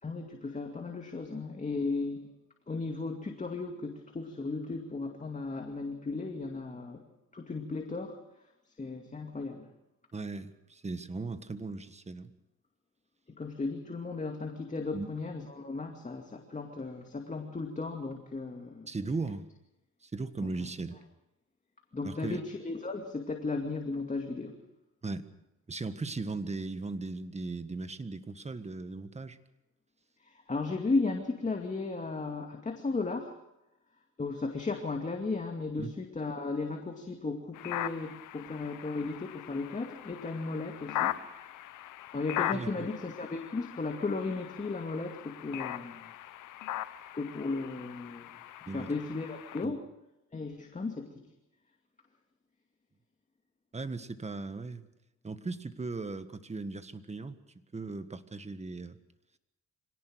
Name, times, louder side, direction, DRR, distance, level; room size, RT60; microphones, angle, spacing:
voice 1, 0.0-2.3 2.7-7.0 7.3-8.2 8.8-9.7 13.4-18.9 21.9-24.6 30.2-33.4 34.2-41.2 42.1-46.1 47.1-48.4 48.7-49.8 50.3-51.1, left 3 dB, 25° left, 3 dB, 2.4 m, -35 dB
voice 2, 10.1-12.3 14.9-15.1 18.9-19.4 20.0-20.9 22.0-22.4 25.0-25.3 25.7-29.4 35.8-35.9 42.5-42.9 48.7-48.9 49.6-49.7 53.7-54.9 55.2-57.4 57.7-59.0, right 3 dB, 20° right, 11 dB, 1.6 m, -37 dB
sound 1, 37.5-49.6, left 13 dB, 85° left, 1.1 m, -40 dB
25.5 x 18.0 x 6.4 m, 0.90 s
cardioid pair, 90°, 30 cm